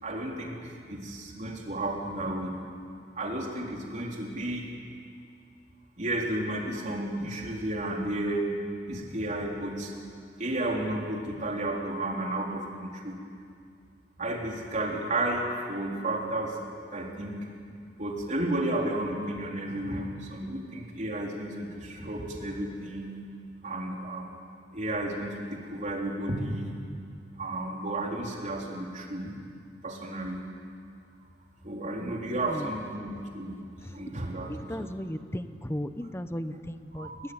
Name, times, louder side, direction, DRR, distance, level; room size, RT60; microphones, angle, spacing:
voice 1, 0.0-2.6 3.2-4.7 6.0-8.5 8.9-9.9 10.4-13.2 14.2-17.4 18.0-23.2 23.6-24.3 24.7-26.8 27.3-29.3 29.8-30.4 31.6-33.6 33.9-34.9 36.9-37.2, right 1 dB, 45° right, -1 dB, 3.8 m, -32 dB
voice 2, 34.5-37.1, equal, 15° left, 10 dB, 0.9 m, -35 dB
23.0 x 19.5 x 9.7 m, 2.3 s
head